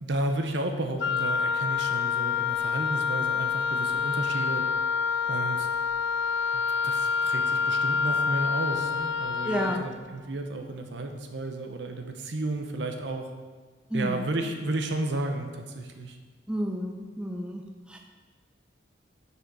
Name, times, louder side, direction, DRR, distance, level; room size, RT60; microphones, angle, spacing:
voice 1, 0.0-4.7 5.3-5.7 6.5-13.3 13.9-16.2, right 2 dB, 70° right, 5 dB, 0.7 m, -32 dB
Wind instrument woodwind instrument, 1.0-9.9, left 6 dB, 75° left, 0.4 m, -27 dB
voice 2, 9.4-9.9 13.9-14.2 16.5-17.6 17.9-18.0, equal, 5° right, 1 dB, 0.4 m, -30 dB
6.5 x 5.2 x 4.7 m, 1.4 s
head